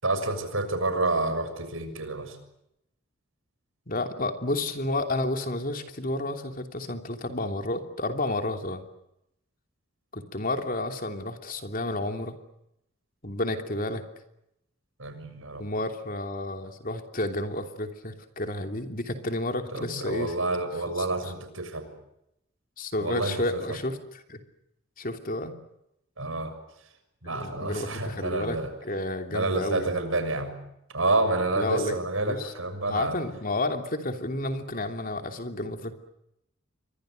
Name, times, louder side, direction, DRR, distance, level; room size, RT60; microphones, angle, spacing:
voice 1, 0.0-2.4 15.0-15.7 19.7-21.9 23.0-23.8 26.2-26.5 27.2-28.7 29.3-30.5 30.9-33.2, right 2 dB, 70° right, 9 dB, 6.6 m, -29 dB
voice 2, 3.9-8.8 10.1-12.4 13.2-14.0 15.6-20.3 21.0-21.1 22.8-24.4 25.0-25.5 27.2-30.0 31.5-32.5 32.9-35.9, left 2 dB, 40° left, 6 dB, 3.0 m, -31 dB
29.5 x 25.0 x 6.6 m, 0.82 s
head